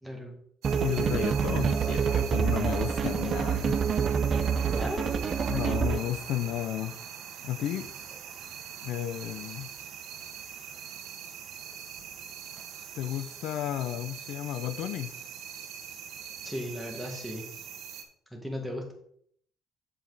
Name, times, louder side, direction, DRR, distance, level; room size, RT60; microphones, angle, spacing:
voice 1, 0.0-0.4 4.7-5.1 16.4-17.5 18.3-18.9, equal, ahead, 1 dB, 1.9 m, -36 dB
sound 1, 0.6-6.2, right 6 dB, 35° right, 0.6 m, -27 dB
sound 2, 0.6-18.0, right 8 dB, 75° right, 1.2 m, -42 dB
voice 2, 0.8-3.8 5.4-7.0 7.4-7.9 8.8-9.7 12.9-15.2, left 12 dB, 75° left, 13 dB, 0.5 m, -33 dB
8.0 x 7.2 x 4.0 m, 0.66 s
cardioid pair, 150°, 0 cm